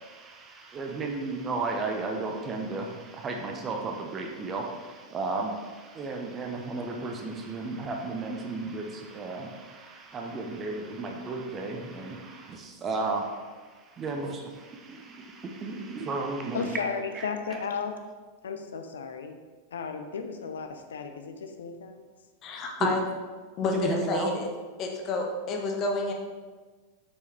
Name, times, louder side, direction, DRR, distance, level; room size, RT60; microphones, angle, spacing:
voice 1, 0.0-13.5 13.8-16.8 17.1-17.6 22.8-22.9 23.7-24.3, right 3 dB, 25° right, 2 dB, 0.8 m, -34 dB
voice 2, 16.5-18.0 18.4-19.4 19.7-22.0, left 5 dB, 65° left, 6 dB, 0.5 m, -34 dB
voice 3, 22.4-23.0 23.6-24.5 24.8-26.1, left 3 dB, 35° left, 2 dB, 0.9 m, -29 dB
6.8 x 4.7 x 3.4 m, 1.4 s
figure-of-eight pair, 90°, 0 cm